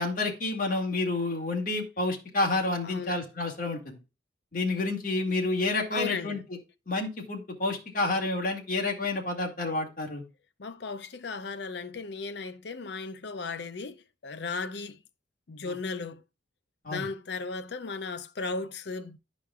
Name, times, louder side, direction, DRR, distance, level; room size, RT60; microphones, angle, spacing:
voice 1, 0.0-4.0 4.5-6.4 6.9-10.2 15.7-15.8 16.8-17.1, left 2 dB, 45° left, 2.0 m, -29 dB
voice 2, 2.8-3.1 5.9-6.4 10.6-15.0 15.5-16.2 16.9-19.2, left 4 dB, 65° left, 0.5 m, -36 dB
11.0 x 5.1 x 2.4 m
head